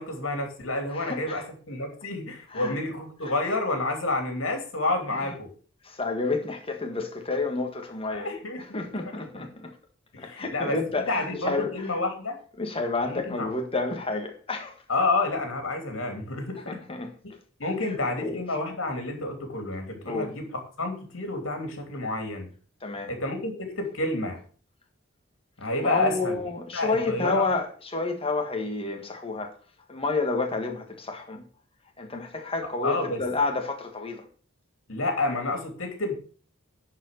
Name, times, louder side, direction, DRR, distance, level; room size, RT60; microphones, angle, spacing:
voice 1, 0.0-5.5 8.1-9.0 10.1-10.8 11.1-12.4 13.0-13.5 14.9-16.8 17.6-20.4 20.8-22.5 23.1-24.4 25.6-26.4 26.7-27.4 32.8-33.2 34.9-36.1, left 2 dB, 65° left, 2.9 m, -29 dB
voice 2, 0.9-1.4 2.5-2.7 5.8-8.3 8.7-9.7 10.2-11.9 12.6-14.8 16.7-17.1 18.2-18.4 20.1-20.3 22.8-23.1 25.8-29.5 29.9-31.4 32.0-34.3, left 3 dB, 25° left, 1.6 m, -30 dB
10.5 x 4.9 x 6.5 m
head